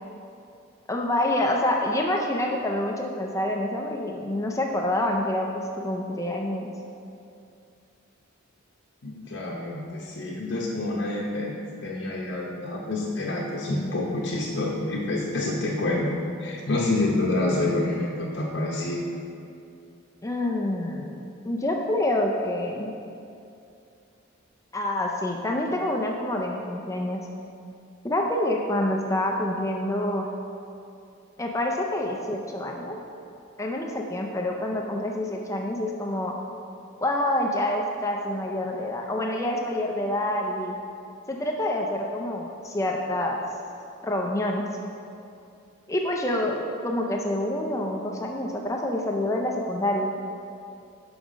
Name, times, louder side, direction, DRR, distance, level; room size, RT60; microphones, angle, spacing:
voice 1, 0.9-6.7 20.2-22.9 24.7-27.2 28.0-30.3 31.4-33.0 33.6-36.3 37.0-40.8 41.3-43.4 44.0-44.6 45.9-50.1, left 1 dB, 15° left, 1 dB, 0.4 m, -27 dB
voice 2, 9.0-11.5 11.8-16.1 16.4-19.0, left 2 dB, 65° left, -4 dB, 0.8 m, -27 dB
5.9 x 5.5 x 5.0 m, 2.6 s
head